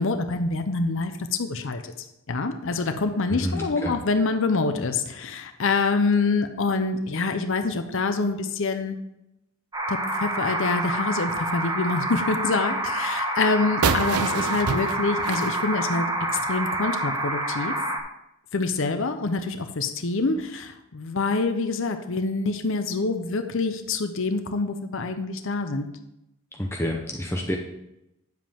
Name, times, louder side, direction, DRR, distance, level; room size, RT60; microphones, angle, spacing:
voice 1, 0.0-1.8 2.3-9.0 9.9-17.7 18.5-25.9, left 3 dB, 60° left, 7 dB, 0.7 m, -26 dB
voice 2, 3.3-4.0 26.6-27.6, left 1 dB, 10° left, 1 dB, 0.7 m, -28 dB
sound 1, 9.7-18.0, right 1 dB, 15° right, 1.1 m, -28 dB
sound 2, 13.8-16.5, right 5 dB, 85° right, 0.6 m, -28 dB
9.2 x 7.6 x 3.5 m, 0.87 s
head